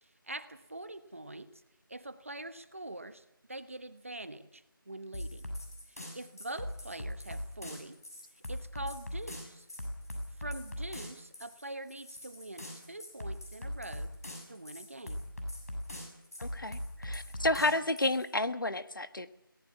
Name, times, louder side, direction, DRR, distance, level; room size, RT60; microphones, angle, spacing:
voice 1, 0.0-1.5 1.9-5.5 5.9-8.0 8.5-9.7 10.4-14.1 14.5-15.3, right 2 dB, 35° right, 12 dB, 1.1 m, -44 dB
sound 1, 5.1-18.3, left 1 dB, 45° left, 6.9 m, -41 dB
voice 2, 16.4-19.3, left 2 dB, 65° left, 11 dB, 1.5 m, -31 dB
22.0 x 18.0 x 7.2 m, 0.83 s
figure-of-eight pair, 180°, 12 cm